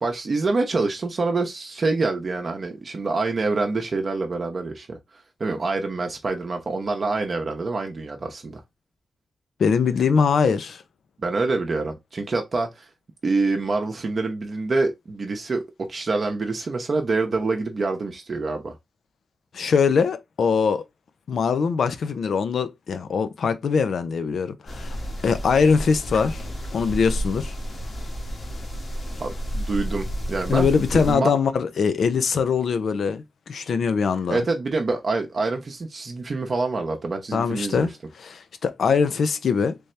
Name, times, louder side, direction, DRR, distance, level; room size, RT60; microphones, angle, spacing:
voice 1, 0.0-5.0 5.4-8.6 11.2-12.9 13.2-15.6 15.9-18.8 29.2-31.3 34.3-37.9, right 3 dB, 50° right, 0.7 m, -26 dB
voice 2, 9.6-10.8 19.5-20.8 21.3-25.0 25.2-26.4 26.7-27.5 30.5-34.4 37.3-37.9 38.2-39.8, left 5 dB, 80° left, 0.5 m, -22 dB
sound 1, 24.7-31.1, equal, 50° left, 1.1 m, -31 dB
3.4 x 2.8 x 3.2 m
wide cardioid pair, 105°, 0 cm